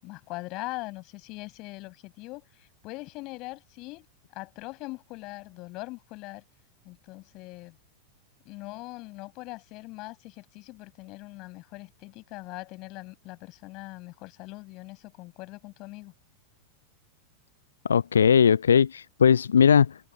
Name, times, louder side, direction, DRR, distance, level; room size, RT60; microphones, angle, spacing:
voice 1, 0.0-4.1 4.3-6.4 6.8-7.8 8.4-16.1, left 22 dB, 40° left, 7.5 m, -41 dB
voice 2, 17.8-20.1, left 7 dB, 70° left, 0.4 m, -19 dB
figure-of-eight pair, 90°, 0 cm